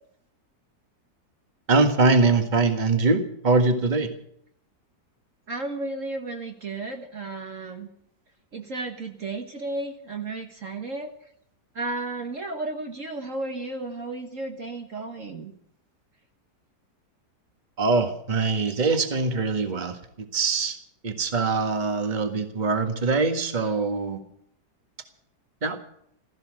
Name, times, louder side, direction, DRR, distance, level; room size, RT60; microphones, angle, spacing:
voice 1, 1.7-4.1 17.8-20.0 20.3-20.8 21.0-24.2 25.6-25.8, right 3 dB, 30° right, 6 dB, 1.7 m, -23 dB
voice 2, 5.5-7.9 8.5-11.1 11.8-15.5, right 2 dB, 50° right, 3 dB, 1.7 m, -33 dB
16.0 x 14.5 x 6.4 m, 0.70 s
omnidirectional pair, 1.8 m